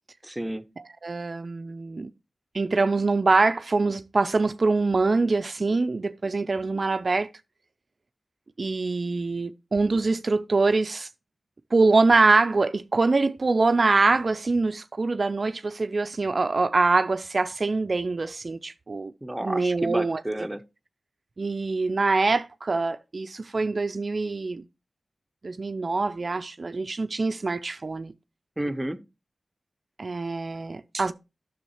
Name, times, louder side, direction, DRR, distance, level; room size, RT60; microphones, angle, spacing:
voice 1, 0.2-0.6 19.2-20.6 28.6-29.0, right 1 dB, 15° right, 0.7 m, -31 dB
voice 2, 1.0-2.1 2.5-7.3 8.6-11.1 11.7-19.1 19.4-20.2 21.4-24.6 25.4-28.1 30.0-31.1, right 3 dB, 60° right, 0.4 m, -24 dB
9.9 x 6.3 x 3.0 m
cardioid pair, 45°, 0 cm